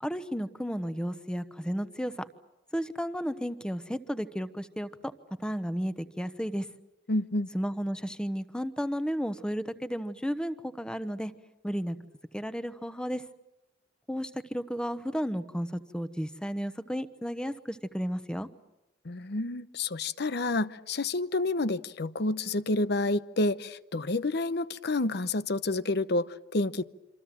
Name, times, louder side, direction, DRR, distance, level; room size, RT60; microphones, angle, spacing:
voice 1, 0.0-2.1 2.7-4.9 5.4-6.7 7.5-11.3 11.6-12.0 12.3-13.2 14.1-18.5, equal, 5° left, 1.1 m, -33 dB
voice 2, 7.1-7.5 19.0-26.8, left 2 dB, 60° left, 0.9 m, -29 dB
27.0 x 26.0 x 7.7 m
head